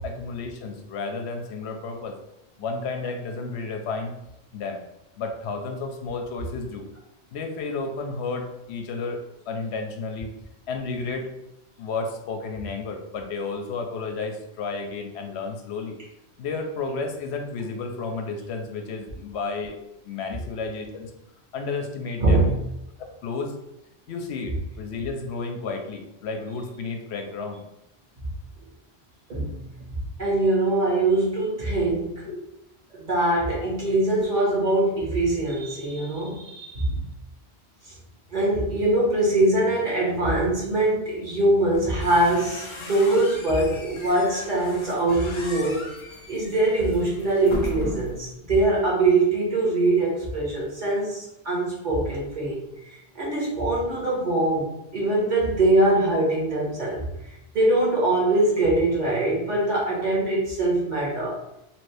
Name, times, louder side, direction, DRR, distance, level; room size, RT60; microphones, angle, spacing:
voice 1, 0.0-2.2 2.6-4.1 4.5-4.8 5.2-6.8 7.3-9.2 9.5-10.3 10.7-11.3 11.8-16.0 16.4-19.7 20.0-21.1 21.5-22.4 23.2-23.5 24.1-27.6 32.3-32.4, left 4 dB, 75° left, 4 dB, 0.8 m, -32 dB
voice 2, 22.2-22.5 29.3-29.6 30.2-32.2 32.9-37.0 38.3-45.9 46.3-52.6 52.9-54.7 54.9-57.0 57.5-61.4, right 2 dB, 45° right, -6 dB, 1.1 m, -23 dB
sound 1, 41.7-48.3, left 2 dB, 50° left, 0.3 m, -37 dB
2.9 x 2.6 x 3.2 m, 0.85 s
omnidirectional pair, 1.1 m